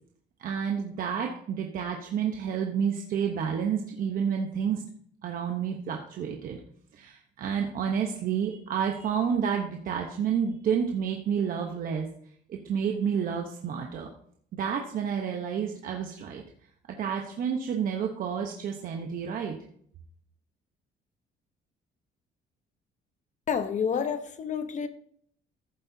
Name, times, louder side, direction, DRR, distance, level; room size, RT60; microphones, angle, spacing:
voice 1, 0.4-4.8 5.2-6.6 6.9-12.1 12.5-14.1 14.5-16.4 17.0-19.6, right 7 dB, 55° right, 1.0 m, -30 dB
voice 2, 23.5-24.9, left 7 dB, 45° left, 0.9 m, -29 dB
14.5 x 7.7 x 2.8 m
cardioid pair, 110°, 17 cm